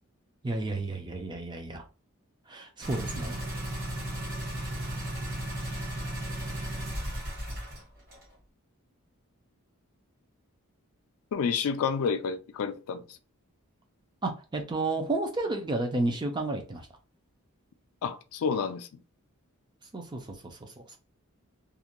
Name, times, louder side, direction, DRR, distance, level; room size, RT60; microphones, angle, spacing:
voice 1, 0.4-1.8 2.5-3.4 14.2-16.9 19.9-21.0, right 2 dB, 20° right, 0.4 m, -32 dB
sound 1, 2.8-7.8 8.1-8.2, right 1 dB, 40° right, 1.3 m, -35 dB
voice 2, 11.3-13.0 18.0-18.9, left 6 dB, 70° left, 0.3 m, -29 dB
2.4 x 2.1 x 2.9 m
head